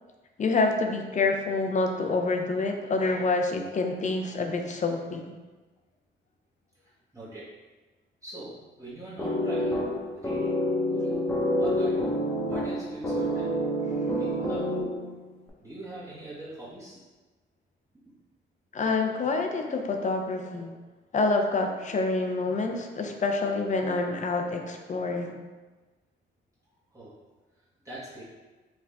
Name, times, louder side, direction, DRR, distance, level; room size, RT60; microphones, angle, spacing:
voice 1, 0.4-5.3 18.7-20.7 21.1-25.4, left 3 dB, 40° left, 4 dB, 0.6 m, -27 dB
voice 2, 6.8-7.5 8.2-9.9 10.1-10.6 10.9-11.2 11.6-12.2 12.4-13.5 14.2-14.7 15.6-17.0 26.9-27.1 27.8-28.2, right 2 dB, 15° right, -9 dB, 1.1 m, -42 dB
sound 1, 9.2-15.2, equal, 10° left, 1.0 m, -28 dB
4.7 x 2.4 x 3.4 m, 1.2 s
cardioid pair, 90°, 20 cm